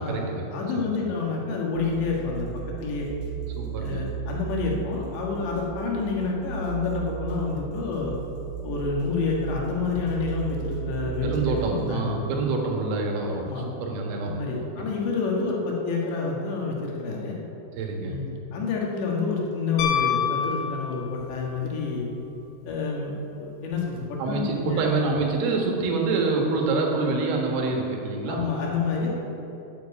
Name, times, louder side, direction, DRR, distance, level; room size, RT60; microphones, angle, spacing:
voice 1, 0.0-0.4 0.7-0.9 3.6-4.0 11.2-14.7 17.8-18.2 24.2-28.5, right 3 dB, 80° right, 0 dB, 4.1 m, -26 dB
voice 2, 0.5-2.5 2.8-3.1 3.8-8.1 8.6-12.1 13.4-13.7 14.2-17.4 18.0-22.1 22.7-23.1 23.4-24.8 28.3-29.1, left 4 dB, 70° left, -2 dB, 3.7 m, -28 dB
sound 1, 1.8-11.9, right 10 dB, 60° right, 3.9 m, -35 dB
Piano, 19.8-21.4 23.7-23.8, left 8 dB, 90° left, 3.7 m, -26 dB
9.8 x 7.4 x 8.3 m, 2.8 s
omnidirectional pair, 5.8 m